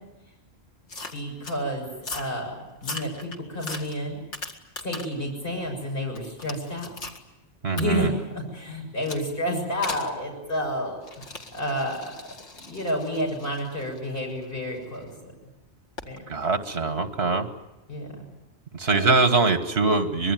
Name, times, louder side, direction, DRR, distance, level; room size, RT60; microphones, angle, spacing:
sound 1, 0.9-1.6 2.0-2.4 2.8-5.2 5.6-7.2 7.8-7.9 9.0-9.3 9.8-10.1 11.0-15.0 16.0-16.2, left 2 dB, 90° left, 2.4 m, -39 dB
voice 1, 1.1-2.5 2.8-4.2 4.8-6.9 7.7-11.0 11.5-12.1 12.5-15.3 16.1-16.2 17.9-18.2 18.9-19.0, equal, 55° left, 0 dB, 7.1 m, -30 dB
voice 2, 7.6-8.1 16.3-17.5 18.7-20.3, right 3 dB, 65° right, 9 dB, 1.9 m, -23 dB
25.0 x 21.5 x 9.3 m, 1.0 s
omnidirectional pair, 1.1 m